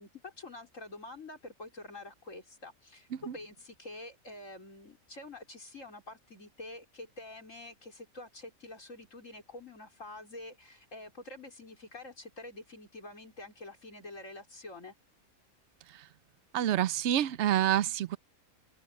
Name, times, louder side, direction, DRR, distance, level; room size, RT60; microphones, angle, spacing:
voice 1, 0.0-14.9, left 2 dB, 60° left, 5.0 m, -47 dB
voice 2, 16.5-18.2, right 11 dB, 65° right, 0.8 m, -28 dB
open air
omnidirectional pair, 1.5 m